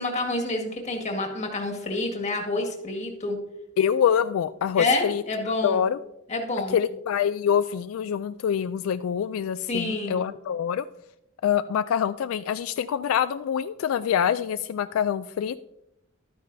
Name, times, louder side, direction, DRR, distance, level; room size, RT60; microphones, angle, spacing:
voice 1, 0.0-3.4 4.8-5.8 6.3-6.7 9.7-10.2, left 2 dB, 35° left, 2 dB, 1.8 m, -28 dB
voice 2, 3.8-5.2 5.6-6.0 6.7-10.9 11.4-15.7, left 8 dB, 75° left, 12 dB, 0.3 m, -25 dB
12.5 x 9.2 x 2.7 m, 0.84 s
head